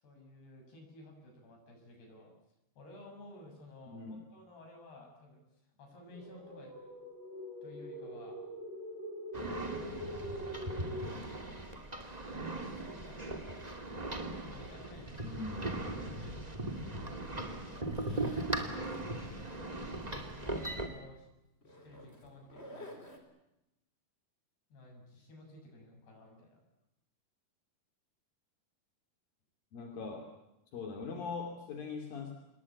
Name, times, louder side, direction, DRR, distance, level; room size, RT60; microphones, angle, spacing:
voice 1, 0.0-2.3 2.8-6.7 7.6-8.4 9.6-10.7 12.4-13.4 14.4-16.4 16.7-18.0 20.0-21.3 21.6-23.0 24.7-26.6, left 1 dB, 90° left, 2 dB, 9.2 m, -54 dB
voice 2, 3.9-4.2 15.2-15.9 29.7-30.3 30.7-32.3, left 4 dB, 65° left, 3 dB, 4.6 m, -41 dB
sound 1, 6.1-11.1, equal, 60° right, 6.4 m, -43 dB
sound 2, 9.3-20.9, right 2 dB, 15° right, 2.0 m, -39 dB
Zipper (clothing), 17.9-20.4 20.7-21.0 21.6-23.2, left 1 dB, 15° left, 4.0 m, -53 dB
27.5 x 21.0 x 8.6 m, 0.89 s
omnidirectional pair, 4.5 m